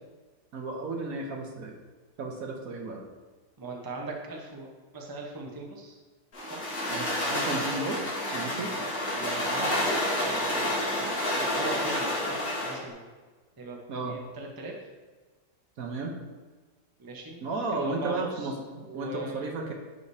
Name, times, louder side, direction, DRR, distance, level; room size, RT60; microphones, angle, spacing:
voice 1, 0.5-1.7 2.2-3.1 6.9-8.7 13.9-14.2 15.8-16.2 17.4-19.7, right 3 dB, 60° right, 2 dB, 1.2 m, -34 dB
voice 2, 3.6-6.0 6.5-6.6 8.6-9.8 10.2-13.1 13.6-14.7 17.0-18.3 18.9-19.5, right 2 dB, 20° right, 0 dB, 0.7 m, -40 dB
sound 1, 6.3-12.8, left 1 dB, 80° left, 2.6 m, -29 dB
10.5 x 5.1 x 2.7 m, 1.4 s
omnidirectional pair, 1.8 m